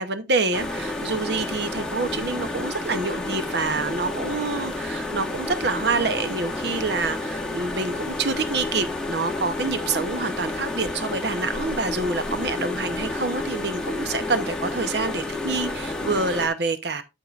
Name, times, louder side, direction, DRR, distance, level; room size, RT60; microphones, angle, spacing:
voice 1, 0.0-17.0, right 3 dB, 55° right, 0.8 m, -27 dB
sound 1, 0.5-16.5, left 2 dB, 5° left, 1.2 m, -30 dB
9.1 x 8.3 x 2.4 m
head